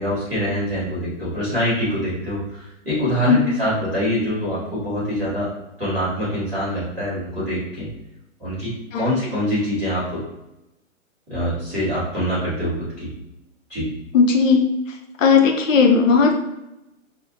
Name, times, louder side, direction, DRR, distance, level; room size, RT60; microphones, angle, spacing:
voice 1, 0.0-5.5 5.8-7.9 8.4-10.2 11.3-13.1 13.7-13.9, equal, ahead, -31 dB, 0.3 m, -24 dB
voice 2, 14.1-14.7 15.2-16.3, left 5 dB, 70° left, 3 dB, 0.7 m, -15 dB
2.6 x 2.1 x 2.7 m, 0.91 s
hypercardioid pair, 140°, 40 cm